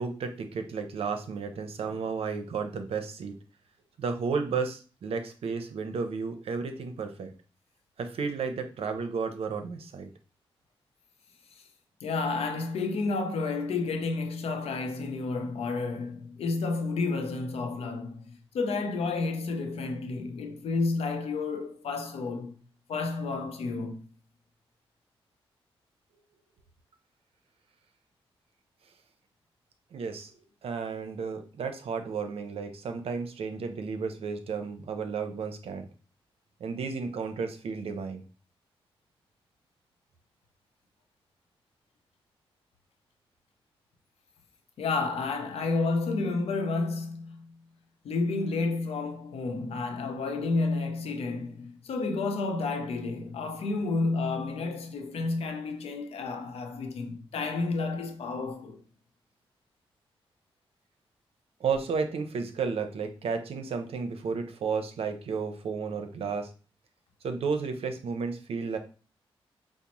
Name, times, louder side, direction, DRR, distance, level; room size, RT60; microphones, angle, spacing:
voice 1, 0.0-3.3 4.0-7.3 8.0-10.1 29.9-30.3 30.6-35.9 36.6-38.2 61.6-66.5 67.2-68.8, right 5 dB, 80° right, 0.6 m, -32 dB
voice 2, 12.0-22.5 22.9-24.0 44.8-47.7 48.0-58.8, left 3 dB, 85° left, 0.6 m, -31 dB
5.0 x 2.0 x 2.9 m
cardioid pair, 75°, 10 cm